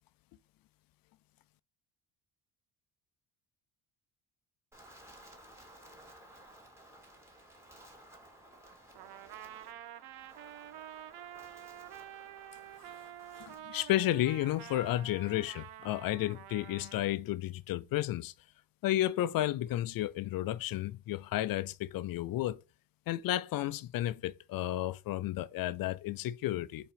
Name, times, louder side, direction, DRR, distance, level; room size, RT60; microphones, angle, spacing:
Wind, 4.7-13.6, right 1 dB, 5° right, 2.1 m, -56 dB
Trumpet, 8.9-17.2, right 12 dB, 65° right, 0.7 m, -49 dB
voice 1, 13.4-18.3 18.8-22.6 23.1-26.9, left 14 dB, 55° left, 0.6 m, -32 dB
4.7 x 4.4 x 5.2 m
cardioid pair, 125°, 41 cm